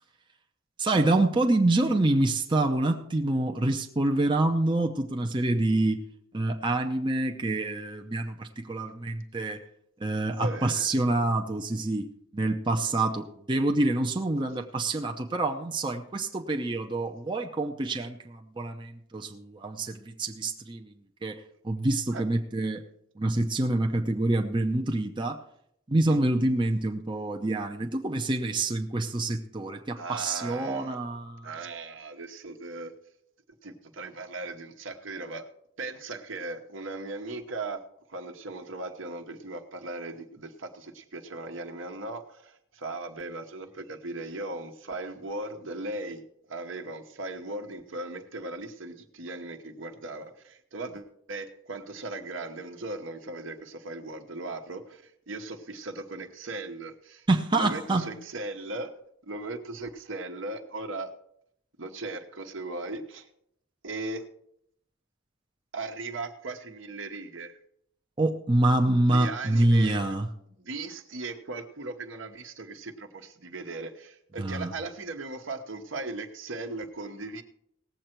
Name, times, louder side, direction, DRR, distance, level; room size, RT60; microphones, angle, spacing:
voice 1, 0.8-6.0 6.3-9.6 10.0-12.1 12.3-20.9 21.2-22.8 23.2-25.4 25.9-31.5 57.3-58.1 68.2-70.3 74.4-74.7, right 2 dB, 25° right, 3 dB, 0.7 m, -26 dB
voice 2, 10.4-10.9 12.7-12.8 22.1-22.2 26.1-26.2 30.0-31.0 31.4-32.9 33.6-35.5 35.8-37.8 38.1-46.2 46.5-57.3 57.5-58.9 59.3-61.1 61.8-63.3 63.8-64.2 65.7-67.6 69.1-70.0 70.6-77.4, right 2 dB, 65° right, 5 dB, 1.2 m, -38 dB
18.5 x 7.7 x 4.5 m, 0.73 s
head